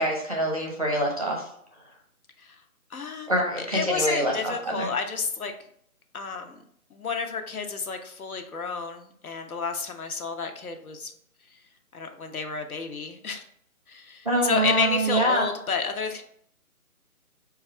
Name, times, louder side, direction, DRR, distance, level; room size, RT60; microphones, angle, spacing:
voice 1, 0.0-1.4 3.3-4.9 14.2-15.5, right 1 dB, 25° right, -2 dB, 0.5 m, -25 dB
voice 2, 2.9-5.5 6.1-6.6 6.9-11.1 11.9-13.4 13.9-16.2, left 5 dB, 70° left, 5 dB, 0.8 m, -31 dB
5.3 x 2.4 x 3.2 m, 0.67 s
figure-of-eight pair, 160°, 45 cm